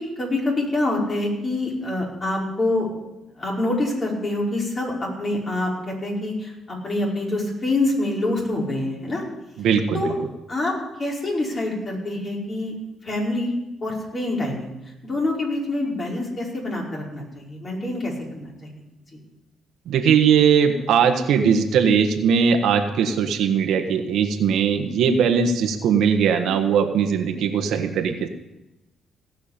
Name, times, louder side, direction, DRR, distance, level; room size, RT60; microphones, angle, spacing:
voice 1, 0.0-2.9 3.4-9.2 9.9-10.1 10.5-10.7 11.0-12.7 13.0-13.5 13.8-14.7 15.0-18.7, left 2 dB, 35° left, -3 dB, 5.0 m, -26 dB
voice 2, 9.6-10.1 19.9-28.3, right 7 dB, 80° right, 6 dB, 1.4 m, -20 dB
17.5 x 6.1 x 8.7 m, 0.95 s
cardioid pair, 90°, 0 cm